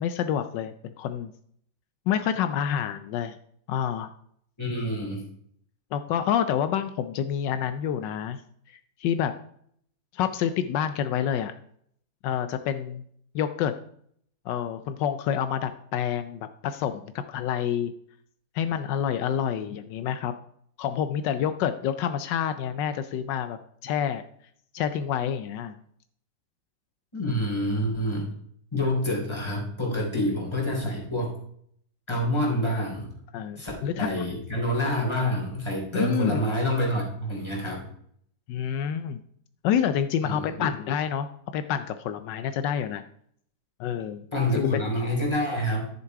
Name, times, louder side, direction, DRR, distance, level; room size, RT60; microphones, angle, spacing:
voice 1, 0.0-1.3 2.1-3.4 3.7-4.1 5.9-8.4 8.7-9.3 10.1-11.5 12.2-13.0 13.3-13.7 14.5-17.9 18.5-20.3 20.8-24.2 24.7-25.7 33.3-34.3 35.9-36.4 38.5-39.2 39.6-43.0 43.8-44.2 44.6-44.9, left 9 dB, 80° left, 10 dB, 1.3 m, -28 dB
voice 2, 4.6-5.2 27.1-28.3 28.7-31.3 32.1-33.1 33.6-33.7 34.0-37.8 40.2-40.7 44.3-45.9, equal, 15° left, -2 dB, 3.3 m, -27 dB
11.5 x 6.8 x 4.6 m, 0.66 s
omnidirectional pair, 1.9 m